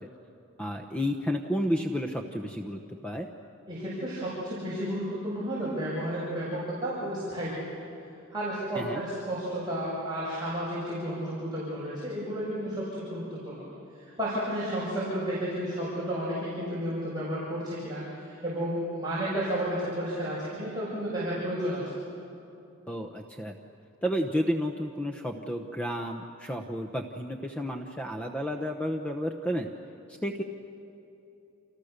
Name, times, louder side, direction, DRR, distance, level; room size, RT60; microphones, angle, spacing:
voice 1, 0.6-3.3 8.7-9.0 22.9-23.6 24.0-29.7 30.2-30.4, equal, 5° left, 4 dB, 0.9 m, -31 dB
voice 2, 3.7-7.7 8.3-13.7 13.9-21.9, equal, 20° right, -9 dB, 6.7 m, -32 dB
29.5 x 29.0 x 6.7 m, 2.8 s
head